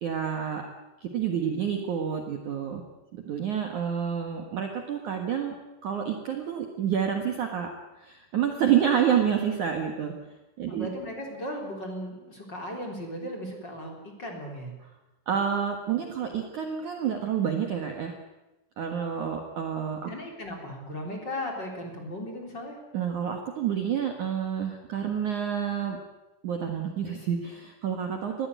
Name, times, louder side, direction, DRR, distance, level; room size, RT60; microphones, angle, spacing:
voice 1, 0.0-0.6 1.0-2.8 3.1-5.6 5.8-7.7 8.0-10.1 10.6-10.9 15.3-18.2 18.8-20.1 22.9-26.0 26.4-28.5, right 8 dB, 60° right, 4 dB, 2.2 m, -28 dB
voice 2, 10.7-14.7 20.1-22.8, equal, 25° left, 1 dB, 3.6 m, -36 dB
21.5 x 16.0 x 9.4 m, 1.0 s
omnidirectional pair, 5.6 m